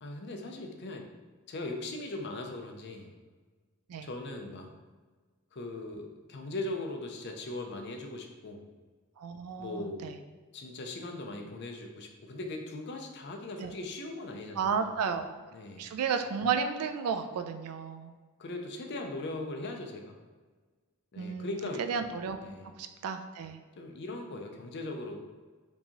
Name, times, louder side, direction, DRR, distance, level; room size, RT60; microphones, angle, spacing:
voice 1, 0.0-1.1 1.5-3.1 4.0-4.7 5.5-8.6 9.6-10.2 10.5-14.9 15.5-15.9 18.4-20.1 21.1-21.9 22.4-22.7 23.8-25.2, left 2 dB, 50° left, 3 dB, 0.5 m, -39 dB
voice 2, 9.2-10.2 13.6-13.7 14.6-15.3 15.8-18.1 21.2-22.4 22.8-23.6, right 6 dB, 85° right, 8 dB, 0.4 m, -33 dB
4.5 x 2.8 x 2.9 m, 1.4 s
head